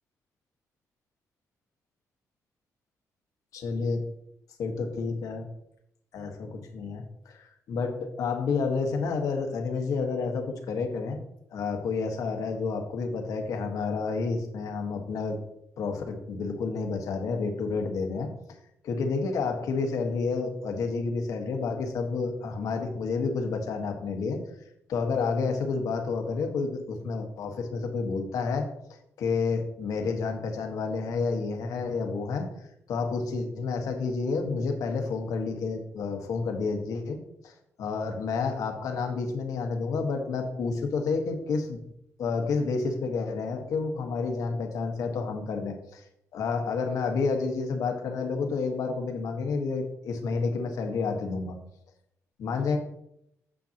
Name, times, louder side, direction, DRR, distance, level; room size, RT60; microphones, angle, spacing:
voice 1, 3.5-4.1 4.6-5.5 6.1-11.2 11.5-15.4 15.8-18.3 18.8-24.4 24.9-28.7 29.2-32.5 32.9-37.5 37.8-41.8 42.2-46.0 46.3-51.6 52.4-52.8, left 4 dB, 70° left, 4 dB, 1.4 m, -30 dB
9.2 x 7.3 x 2.9 m, 0.77 s
cardioid pair, 150°, 6 cm